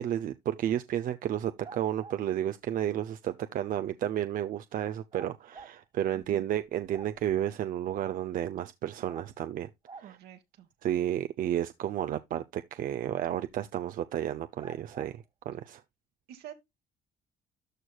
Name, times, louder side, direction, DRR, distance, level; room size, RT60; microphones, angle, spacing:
voice 1, 0.0-9.7 9.9-10.2 10.8-15.8, right 11 dB, 55° right, 0.5 m, -32 dB
sound 1, 1.6-2.2 5.1-5.7 6.2-6.3 6.6-7.4 9.1-9.3 9.9-10.1 13.5-13.6 14.6-15.1, right 4 dB, 30° right, 1.4 m, -48 dB
voice 2, 6.1-6.4 10.0-10.7 16.3-16.5, right 11 dB, 75° right, 1.7 m, -47 dB
13.5 x 4.5 x 2.2 m
cardioid pair, 110°, 17 cm